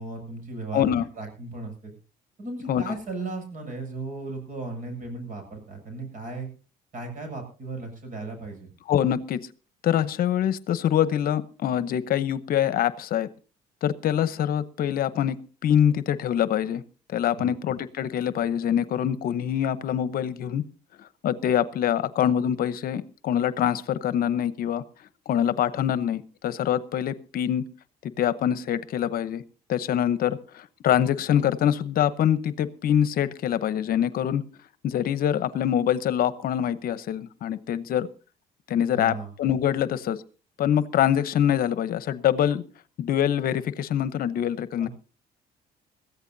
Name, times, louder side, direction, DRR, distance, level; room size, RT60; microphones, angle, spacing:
voice 1, 0.0-1.9 2.4-6.5 6.9-8.7 17.4-17.5 38.9-39.3 44.8-44.9, right 3 dB, 50° right, 5 dB, 7.5 m, -36 dB
voice 2, 0.7-1.1 2.7-2.9 8.9-9.4 9.8-13.3 13.8-15.4 15.6-16.8 17.1-20.6 21.2-24.8 25.3-27.6 28.0-29.4 29.7-34.4 34.8-38.1 38.7-40.2 40.6-42.6 43.0-44.9, left 10 dB, 60° left, 15 dB, 0.9 m, -24 dB
21.5 x 15.0 x 2.7 m, 0.35 s
cardioid pair, 110°, 17 cm